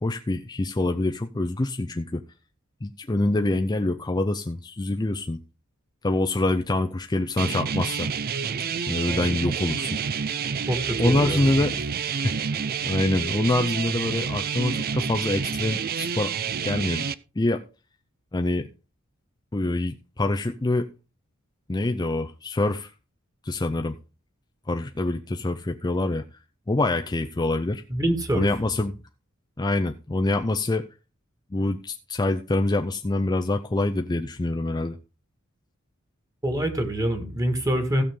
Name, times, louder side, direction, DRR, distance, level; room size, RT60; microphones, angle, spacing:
voice 1, 0.0-2.2 2.8-5.4 6.0-8.1 8.9-10.0 11.0-11.8 12.2-12.3 12.8-16.3 16.6-17.1 17.4-17.6 18.3-18.7 19.5-20.9 21.7-22.9 23.4-24.0 24.7-26.2 26.7-27.8 28.3-29.0 29.6-30.8 31.5-35.0, left 2 dB, 20° left, 0.5 m, -25 dB
sound 1, 7.4-17.1, right 6 dB, 50° right, 0.5 m, -28 dB
voice 2, 10.7-11.5 27.9-28.5 36.4-38.0, right 1 dB, 20° right, 1.9 m, -25 dB
15.5 x 6.9 x 3.7 m
head